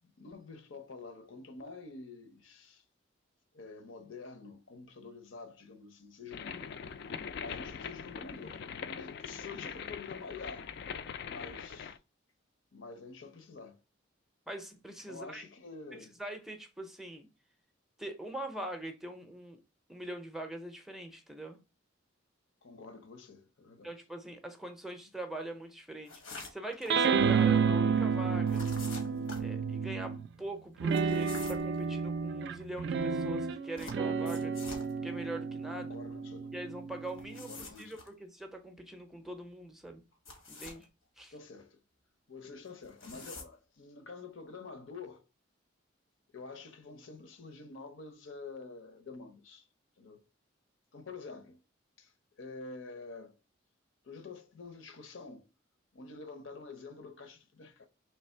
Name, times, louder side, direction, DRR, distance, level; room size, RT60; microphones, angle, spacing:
voice 1, 0.0-2.8 3.5-6.7 7.3-10.7 11.3-12.0 12.7-13.8 15.1-16.2 22.6-23.9 35.7-36.5 37.3-38.0 41.3-41.8 42.3-45.2 46.3-49.7 50.0-50.2 50.9-51.6 52.0-52.1 52.4-53.4 54.0-55.5 55.9-57.9, left 4 dB, 75° left, 0.7 m, -48 dB
sound 1, 6.3-12.0, left 6 dB, 55° left, 0.3 m, -42 dB
voice 2, 14.5-15.4 16.2-17.3 18.0-19.6 19.9-21.6 23.8-26.2 26.5-28.6 29.4-34.5 35.0-35.9 36.5-40.0 40.5-40.9 41.2-41.3, right 1 dB, ahead, 0.5 m, -42 dB
sound 2, 26.0-26.9 28.5-29.5 30.9-31.7 33.8-34.9 37.0-38.1 40.1-40.8 42.7-43.5, left 3 dB, 90° left, 1.1 m, -47 dB
sound 3, 26.9-30.3 30.8-37.6, right 6 dB, 55° right, 0.3 m, -31 dB
3.3 x 3.1 x 4.3 m
head